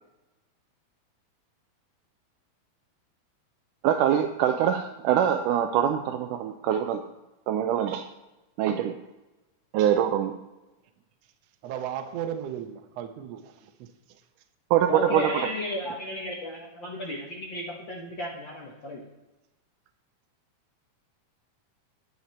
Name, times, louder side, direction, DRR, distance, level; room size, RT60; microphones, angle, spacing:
voice 1, 3.8-7.0 7.5-8.1 8.6-9.0 9.7-10.4 14.7-15.5, right 10 dB, 85° right, 2.2 m, -24 dB
voice 2, 11.6-13.9, right 9 dB, 70° right, 1.7 m, -35 dB
voice 3, 14.9-19.0, left 1 dB, 55° left, 1.3 m, -34 dB
10.5 x 9.5 x 4.3 m
omnidirectional pair, 3.6 m